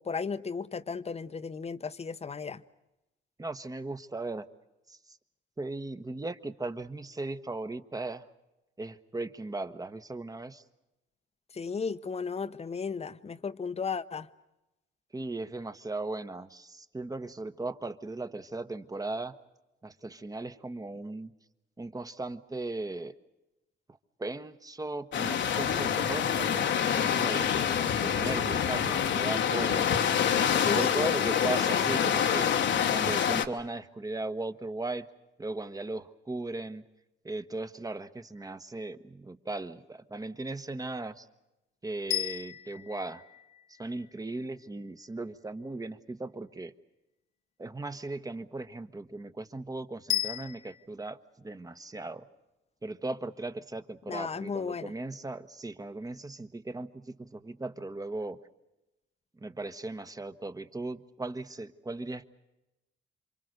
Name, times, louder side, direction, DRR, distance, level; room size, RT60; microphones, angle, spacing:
voice 1, 0.0-2.6 11.5-14.3 30.5-31.1 54.1-54.9, left 5 dB, 30° left, 1.0 m, -34 dB
voice 2, 3.4-4.5 4.9-5.0 5.6-8.3 8.8-10.6 15.1-19.3 19.8-21.3 21.8-23.1 24.2-27.5 28.0-29.9 30.6-35.1 35.4-36.8 37.2-41.3 41.8-43.2 43.8-46.7 47.6-52.3 52.8-58.4 59.4-62.3, right 2 dB, 20° right, 1.2 m, -37 dB
sound 1, 25.1-33.4, left 8 dB, 65° left, 1.4 m, -26 dB
sound 2, 42.1-44.2 50.1-50.8, left 11 dB, 85° left, 1.6 m, -35 dB
28.0 x 25.0 x 6.6 m
cardioid pair, 90°, 20 cm